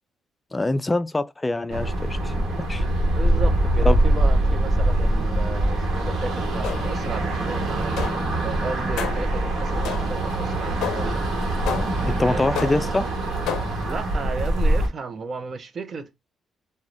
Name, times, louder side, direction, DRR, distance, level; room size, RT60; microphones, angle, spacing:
voice 1, 0.5-2.8 3.8-4.0 12.1-13.0, left 2 dB, 20° left, 0.3 m, -24 dB
sound 1, 1.7-14.9, right 1 dB, 65° right, 1.1 m, -23 dB
voice 2, 3.1-11.3 12.2-12.6 13.8-16.1, right 4 dB, 45° right, 0.6 m, -34 dB
sound 2, 6.6-7.1 8.0-8.4 9.0-9.4 9.8-10.3 10.8-11.2 11.7-12.1 12.6-13.0 13.5-13.9, left 8 dB, 85° left, 0.4 m, -31 dB
2.5 x 2.2 x 3.0 m
cardioid pair, 90°, 0 cm